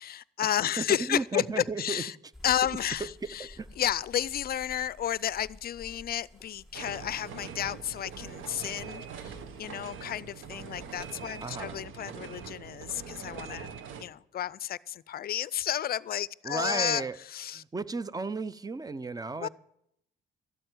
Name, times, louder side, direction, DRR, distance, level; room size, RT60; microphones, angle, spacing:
voice 1, 0.0-2.1 2.4-3.5 3.8-13.7 14.0-17.0 17.3-17.6 19.4-19.5, left 11 dB, 50° left, 0.4 m, -32 dB
voice 2, 0.8-2.0 3.4-3.7 11.4-11.8 16.4-17.2 17.5-19.5, right 3 dB, 20° right, 0.6 m, -34 dB
sound 1, 2.3-11.5, left 1 dB, ahead, 3.8 m, -54 dB
sound 2, 6.7-14.0, right 6 dB, 85° right, 1.2 m, -43 dB
12.5 x 7.8 x 9.3 m
cardioid pair, 90°, 20 cm